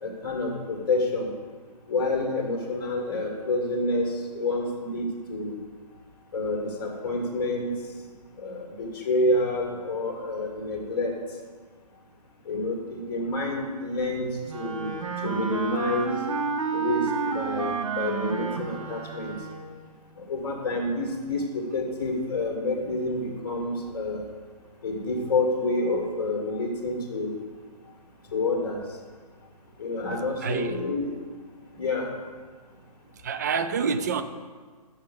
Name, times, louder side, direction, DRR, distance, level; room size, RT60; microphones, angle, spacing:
voice 1, 0.0-1.3 1.9-5.6 6.3-7.7 8.4-11.1 12.5-14.9 15.2-16.1 16.7-19.4 20.2-24.2 24.8-27.3 28.3-28.8 29.8-31.1 31.8-32.1, left 2 dB, 35° left, 1 dB, 1.8 m, -28 dB
Wind instrument woodwind instrument, 14.5-19.8, right 6 dB, 50° right, 0.9 m, -30 dB
voice 2, 30.4-30.8 33.2-34.2, right 6 dB, 25° right, 9 dB, 0.3 m, -27 dB
6.5 x 6.1 x 6.8 m, 1.5 s
figure-of-eight pair, 135°, 21 cm